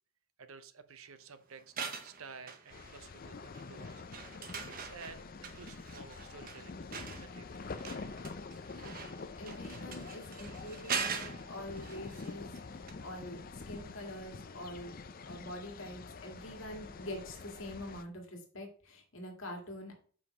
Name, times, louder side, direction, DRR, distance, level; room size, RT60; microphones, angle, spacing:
voice 1, 0.4-1.7 2.0-4.0 4.6-6.8 7.1-7.4 7.8-7.9, right 5 dB, 70° right, 11 dB, 0.8 m, -52 dB
sound 1, 1.6-3.2 3.5-12.6 12.9-13.0, right 6 dB, 40° right, 0.8 m, -42 dB
sound 2, 2.7-18.0, left 4 dB, 40° left, 0.5 m, -46 dB
voice 2, 8.7-14.9 15.2-20.0, left 1 dB, 60° left, 2 dB, 2.0 m, -45 dB
5.7 x 5.0 x 4.9 m, 0.44 s
head